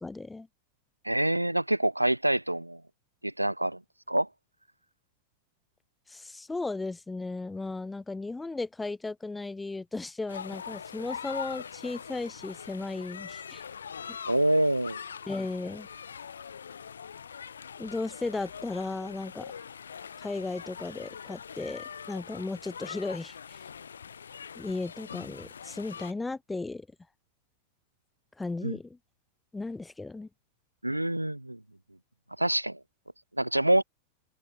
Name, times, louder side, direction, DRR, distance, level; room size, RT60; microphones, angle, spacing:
voice 1, 0.0-0.5 6.1-13.7 15.3-15.9 17.8-19.5 20.2-23.6 24.5-26.9 28.4-29.0 29.5-30.3, left 3 dB, 10° left, 0.9 m, -35 dB
voice 2, 1.0-2.8 3.2-3.8 4.1-4.3 14.3-15.0 28.6-28.8 30.8-31.6 32.4-32.8 33.4-33.8, right 1 dB, 85° right, 0.9 m, -26 dB
sound 1, 10.3-26.1, left 7 dB, 70° left, 2.4 m, -43 dB
open air
figure-of-eight pair, 90°, 0 cm